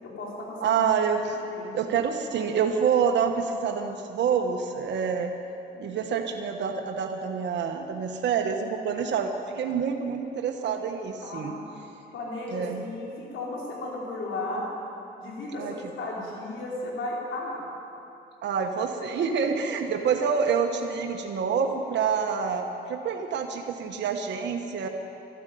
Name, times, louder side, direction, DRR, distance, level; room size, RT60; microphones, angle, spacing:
voice 1, 0.0-0.8 1.5-1.7 11.2-11.8 12.1-14.6 15.2-17.6, left 2 dB, 75° left, -3 dB, 4.4 m, -35 dB
voice 2, 0.6-1.4 1.7-5.3 5.8-11.5 12.5-12.8 15.6-15.7 18.4-24.9, right 6 dB, 65° right, 3 dB, 1.2 m, -27 dB
13.0 x 11.5 x 9.3 m, 2.8 s
cardioid pair, 90°, 20 cm